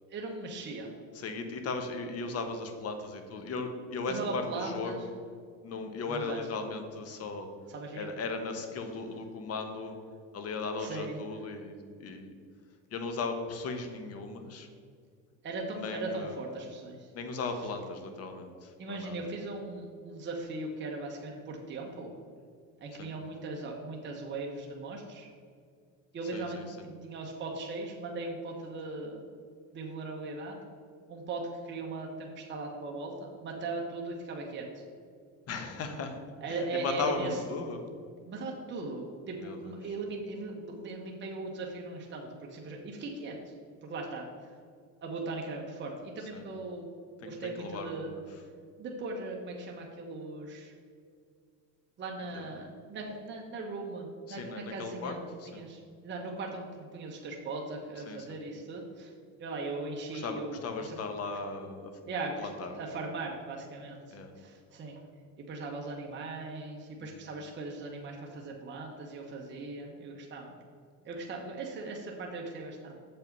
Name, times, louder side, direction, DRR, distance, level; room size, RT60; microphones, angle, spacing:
voice 1, 0.1-0.9 4.1-5.0 6.1-6.4 7.7-8.1 10.8-11.2 15.4-17.1 18.8-22.1 22.8-25.3 26.1-29.2 29.7-30.6 31.1-33.1 33.4-34.8 36.4-37.4 38.3-43.4 43.8-44.2 45.0-46.9 47.2-48.1 48.8-50.7 52.0-59.1 59.4-60.6 60.9-61.0 62.1-62.5 62.8-65.0 65.5-70.5 71.0-73.0, right 3 dB, 30° right, 0 dB, 1.1 m, -39 dB
voice 2, 1.1-5.1 5.6-7.5 7.9-10.0 10.3-12.3 12.9-14.7 15.7-16.4 17.1-19.2 22.9-23.1 26.3-26.8 35.5-36.2 36.5-37.8 39.3-39.9 46.2-46.5 47.2-48.4 52.3-52.5 54.3-55.6 58.1-58.4 60.1-62.0 62.4-62.7 64.1-64.3 67.0-67.2, left 3 dB, 40° left, 6 dB, 1.2 m, -37 dB
7.1 x 5.6 x 5.3 m, 2.1 s
supercardioid pair, 115°, 36 cm